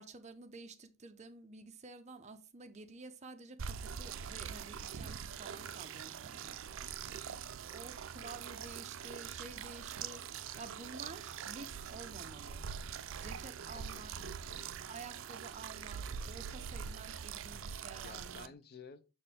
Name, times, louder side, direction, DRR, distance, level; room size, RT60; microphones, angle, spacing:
voice 1, 0.0-6.6 7.7-10.2 10.5-12.7 13.0-14.1 14.9-18.5, right 3 dB, 35° right, 0.7 m, -51 dB
sound 1, 3.6-18.5, right 7 dB, 70° right, 0.4 m, -44 dB
voice 2, 7.1-7.6 8.2-8.5 13.7-14.7 18.0-19.1, left 5 dB, 50° left, 0.5 m, -55 dB
6.6 x 4.3 x 3.5 m
head